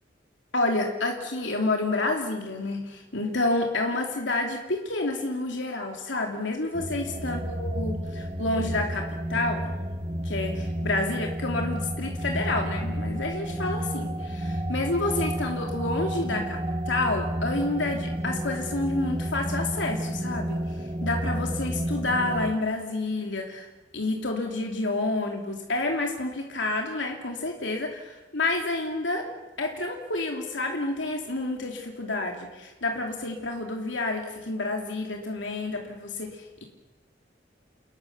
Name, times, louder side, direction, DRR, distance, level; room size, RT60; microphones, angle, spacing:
voice 1, 0.5-9.6 10.2-23.7 23.9-29.3 29.6-36.6, left 2 dB, 80° left, 1 dB, 2.9 m, -29 dB
sound 1, 6.7-22.5, right 1 dB, 25° right, 1.4 m, -31 dB
29.0 x 20.5 x 7.1 m, 1.2 s
head